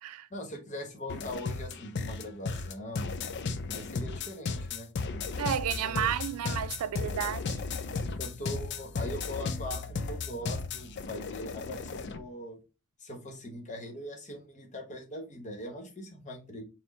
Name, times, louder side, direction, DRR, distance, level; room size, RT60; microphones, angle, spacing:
voice 1, 0.3-3.1 3.7-4.9 5.8-6.1 8.2-12.6 13.0-16.6, left 1 dB, 35° left, 1.1 m, -41 dB
sound 1, 1.1-12.2, left 4 dB, 55° left, 0.4 m, -35 dB
voice 2, 5.4-7.6, right 9 dB, 85° right, 0.3 m, -32 dB
4.3 x 2.1 x 4.1 m
head